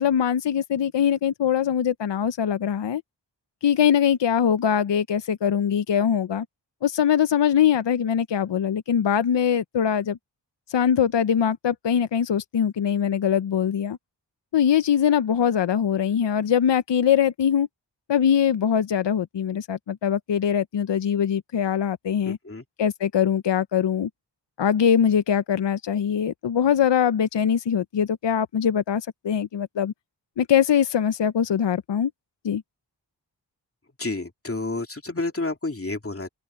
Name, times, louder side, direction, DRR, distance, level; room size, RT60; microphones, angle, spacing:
voice 1, 0.0-3.0 3.6-6.5 6.8-10.2 10.7-14.0 14.5-17.7 18.1-22.4 22.8-24.1 24.6-29.9 30.4-32.1 32.4-32.6, left 8 dB, 75° left, 0.7 m, -22 dB
voice 2, 22.3-22.6 34.0-36.3, left 2 dB, 30° left, 2.7 m, -30 dB
open air
cardioid pair, 45°, 44 cm